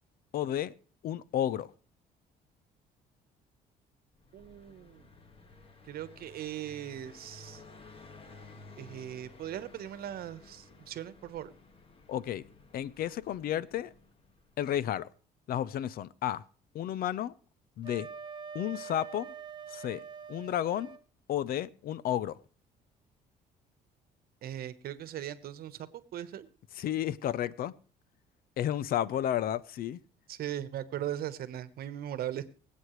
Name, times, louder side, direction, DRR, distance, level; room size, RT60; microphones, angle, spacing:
voice 1, 0.3-0.7 1.0-1.7 12.1-12.4 12.7-13.9 14.6-15.1 15.5-16.4 16.7-17.3 17.8-18.1 18.5-19.3 19.7-20.0 20.3-21.0 21.3-22.4 26.8-27.7 28.6-30.0, left 11 dB, 60° left, 0.6 m, -32 dB
Car passing by, 4.2-14.8, left 3 dB, 35° left, 1.7 m, -54 dB
voice 2, 4.3-5.1 5.9-7.6 8.8-11.5 24.4-26.5 30.3-32.4, right 11 dB, 65° right, 1.1 m, -39 dB
Wind instrument woodwind instrument, 17.8-21.0, right 6 dB, 25° right, 0.9 m, -44 dB
24.5 x 8.4 x 3.2 m
cardioid pair, 110°, 17 cm